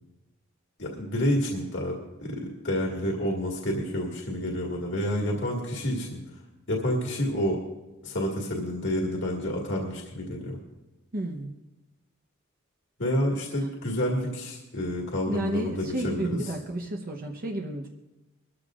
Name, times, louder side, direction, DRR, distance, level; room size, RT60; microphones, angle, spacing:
voice 1, 0.8-6.2 6.7-7.6 8.0-10.6 13.0-16.4, equal, 65° left, -1 dB, 2.0 m, -29 dB
voice 2, 11.1-11.5 15.3-17.9, right 1 dB, 45° right, 1 dB, 1.0 m, -31 dB
21.5 x 13.5 x 2.5 m, 1.0 s
head